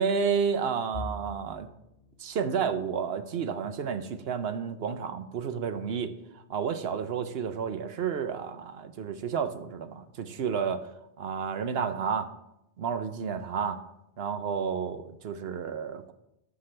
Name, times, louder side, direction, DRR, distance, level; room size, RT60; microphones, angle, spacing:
voice 1, 0.0-1.7 2.2-10.9 11.2-12.3 12.8-13.8 14.2-16.1, right 6 dB, 70° right, 10 dB, 0.9 m, -31 dB
sound 1, 10.9-12.8 13.2-13.5 13.8-14.0 14.9-15.3, left 2 dB, 45° left, 0.8 m, -51 dB
13.5 x 6.0 x 3.3 m, 0.84 s
omnidirectional pair, 1.1 m